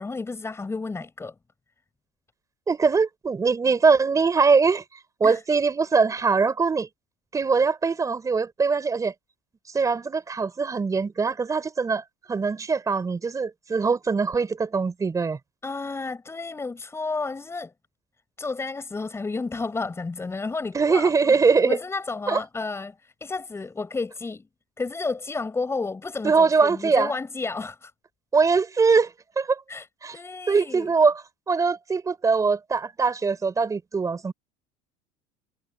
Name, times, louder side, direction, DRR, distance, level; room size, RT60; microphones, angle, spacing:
voice 1, 0.0-1.3 5.2-5.4 15.6-17.7 18.4-21.4 21.7-24.4 24.8-27.9 29.7-29.9 30.1-30.9, left 3 dB, 15° left, 6.7 m, -31 dB
voice 2, 2.7-4.8 5.2-6.9 7.3-9.1 9.7-15.4 20.7-21.8 22.3-22.4 26.2-27.1 28.3-29.6 30.0-30.1 30.5-34.3, right 4 dB, 20° right, 3.7 m, -22 dB
supercardioid pair, 110°, 15 cm